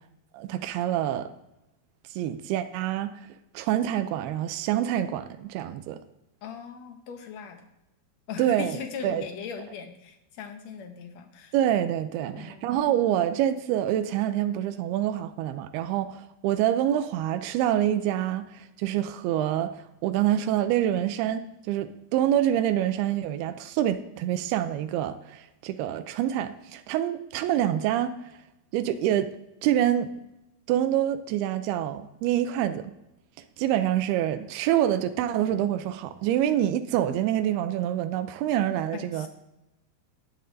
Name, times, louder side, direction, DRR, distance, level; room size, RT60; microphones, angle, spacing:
voice 1, 0.3-1.3 2.1-3.1 3.5-6.0 8.4-9.2 11.5-28.1 28.7-29.3 29.6-30.1 30.7-32.9 33.6-39.3, right 11 dB, 90° right, 2.6 m, -26 dB
voice 2, 6.4-7.6 8.3-11.5 12.3-12.8 38.9-39.3, left 7 dB, 85° left, 1.5 m, -39 dB
18.0 x 11.0 x 2.7 m
omnidirectional pair, 4.4 m